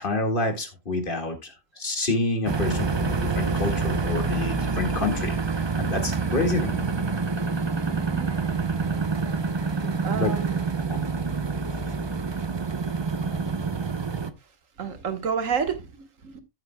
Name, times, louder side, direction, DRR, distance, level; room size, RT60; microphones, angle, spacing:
voice 1, 0.0-5.3 5.8-6.8 10.1-10.3 10.9-11.0, left 2 dB, 40° left, 2.0 m, -28 dB
sound 1, 2.5-14.3, right 4 dB, 30° right, 0.5 m, -27 dB
voice 2, 7.9-8.3 10.0-10.6 14.8-16.4, right 6 dB, 75° right, 1.7 m, -30 dB
14.5 x 7.7 x 2.2 m
omnidirectional pair, 1.4 m